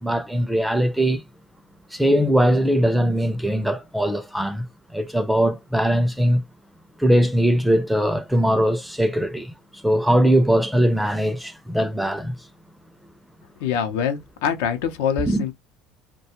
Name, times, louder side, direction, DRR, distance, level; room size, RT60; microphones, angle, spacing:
voice 1, 0.0-1.2 1.9-4.7 4.9-6.4 7.0-9.5 9.8-12.3 15.3-15.4, equal, ahead, 0.4 m, -20 dB
voice 2, 13.6-15.5, left 7 dB, 85° left, 0.6 m, -24 dB
2.4 x 2.2 x 2.8 m
supercardioid pair, 110°, 0 cm